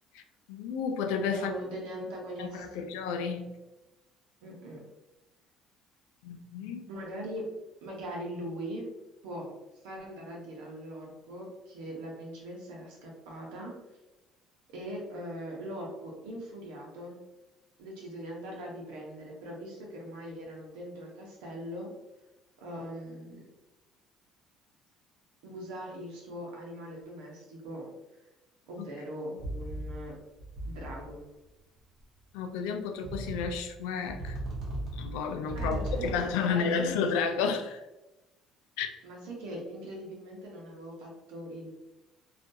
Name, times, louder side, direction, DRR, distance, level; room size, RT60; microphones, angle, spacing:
voice 1, 0.5-1.6 2.4-3.5 6.2-6.8 32.3-34.4 34.9-37.8 38.8-38.9, left 6 dB, 85° left, 5 dB, 0.3 m, -31 dB
voice 2, 1.3-2.9 4.4-4.8 6.9-7.5 7.8-8.9 9.2-9.5 9.8-13.7 14.7-17.2 17.8-21.9 22.6-23.4 25.4-27.9 28.7-30.1 30.6-31.2 35.5-37.2 39.0-41.7, equal, 90° right, -1 dB, 0.8 m, -41 dB
sound 1, 29.4-30.1 30.4-31.1 32.0-32.1 33.0-33.7 34.1-36.4, right 1 dB, 55° right, 0.9 m, -37 dB
2.4 x 2.2 x 2.6 m, 1.0 s
supercardioid pair, 95°, 0 cm